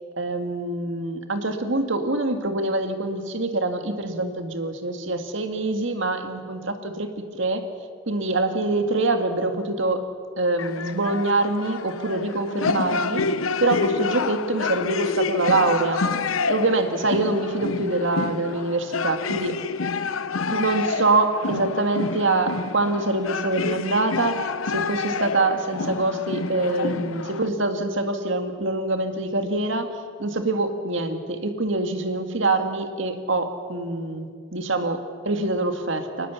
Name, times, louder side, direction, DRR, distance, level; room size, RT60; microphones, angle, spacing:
voice 1, 0.2-7.7 8.1-10.0 10.4-13.2 13.6-16.0 16.5-19.6 20.5-24.4 24.7-29.9 30.2-36.3, right 2 dB, 70° right, 6 dB, 1.9 m, -25 dB
sound 1, 10.6-27.5, left 4 dB, 85° left, 0.8 m, -28 dB
23.0 x 19.5 x 7.1 m, 2.1 s
head